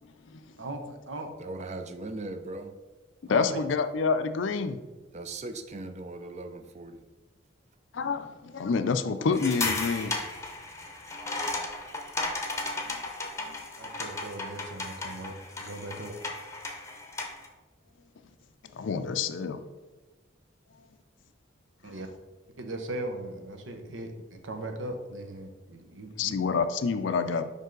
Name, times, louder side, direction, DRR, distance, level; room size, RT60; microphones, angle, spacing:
voice 1, 0.6-1.3 3.3-3.6 13.8-16.2 21.8-22.1 22.6-26.3, right 1 dB, 80° right, 5 dB, 0.8 m, -39 dB
voice 2, 1.4-2.7 3.5-3.6 5.1-7.0, right 2 dB, 35° right, 8 dB, 0.5 m, -39 dB
voice 3, 3.2-4.8 7.9-10.1 12.9-13.0 13.4-13.6 18.7-19.6 26.2-27.4, left 5 dB, 75° left, 10 dB, 0.4 m, -28 dB
sound 1, 9.3-17.5, left 3 dB, 15° left, 0.7 m, -35 dB
5.4 x 5.3 x 3.8 m, 1.2 s
head